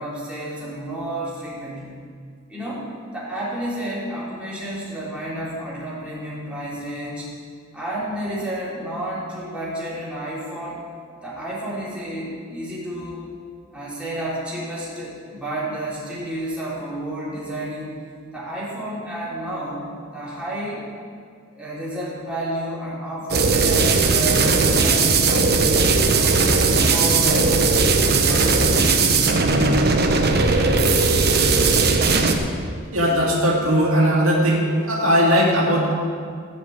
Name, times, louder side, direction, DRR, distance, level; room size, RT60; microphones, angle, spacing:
voice 1, 0.0-1.9 2.5-7.3 7.7-10.8 11.2-13.3 13.7-18.0 18.3-20.8 21.5-26.4 26.8-27.8 28.2-28.8, right 1 dB, 5° right, -8 dB, 3.6 m, -31 dB
sound 1, 23.3-32.3, right 4 dB, 55° right, 1.1 m, -18 dB
voice 2, 32.9-35.9, equal, 85° right, -3 dB, 2.4 m, -18 dB
16.0 x 5.4 x 8.6 m, 2.1 s
head